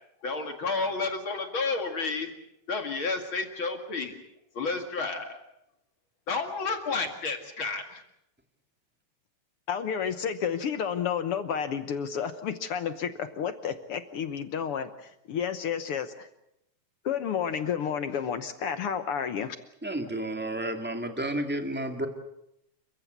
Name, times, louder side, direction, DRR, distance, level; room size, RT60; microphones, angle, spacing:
voice 1, 0.2-2.3 2.7-4.2 4.5-5.4 6.3-8.0, left 4 dB, 45° left, 5 dB, 2.6 m, -31 dB
voice 2, 9.7-16.3 17.0-19.6, left 7 dB, 60° left, 10 dB, 1.6 m, -31 dB
voice 3, 19.8-22.1, right 1 dB, 5° right, 5 dB, 1.7 m, -31 dB
29.5 x 15.5 x 8.2 m, 0.82 s
omnidirectional pair, 3.5 m